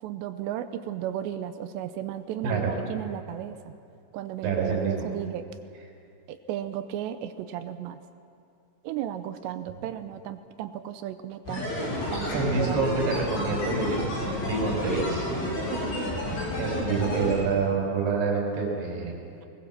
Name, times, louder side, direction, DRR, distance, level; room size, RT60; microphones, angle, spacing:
voice 1, 0.0-3.7 4.1-5.4 6.3-8.0 8.8-11.8 12.1-13.2 15.7-16.1, right 10 dB, 80° right, 10 dB, 2.8 m, -35 dB
voice 2, 4.4-5.1 12.3-15.3 16.6-19.2, right 4 dB, 60° right, -1 dB, 6.3 m, -27 dB
sound 1, 11.5-17.3, left 1 dB, 80° left, 9.4 m, -30 dB
21.5 x 20.0 x 7.3 m, 2.6 s
omnidirectional pair, 5.2 m